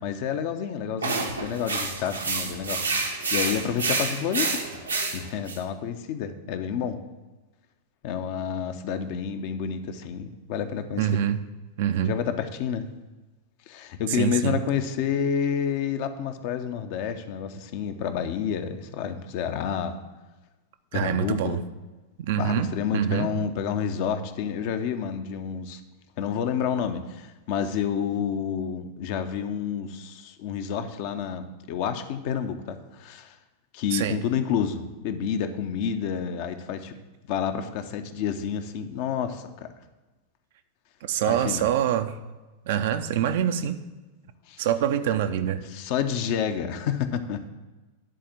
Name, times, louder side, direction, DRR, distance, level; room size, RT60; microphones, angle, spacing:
voice 1, 0.0-2.8 3.3-4.6 5.1-7.0 8.0-11.1 12.0-12.9 13.7-20.0 20.9-21.6 22.4-25.8 26.2-33.4 33.7-36.9 37.3-39.7 41.2-41.7 44.5-44.6 45.7-47.5, left 8 dB, 45° left, 8 dB, 0.7 m, -29 dB
sound 1, 1.0-5.6, right 3 dB, 75° right, 1.1 m, -28 dB
voice 2, 11.0-11.4 11.8-12.1 14.1-14.6 20.9-21.6 22.2-23.3 33.9-34.2 41.0-42.2 42.7-43.8 44.6-45.6, right 10 dB, 55° right, 9 dB, 0.5 m, -25 dB
10.0 x 4.2 x 7.4 m, 1.2 s
figure-of-eight pair, 90°, 0 cm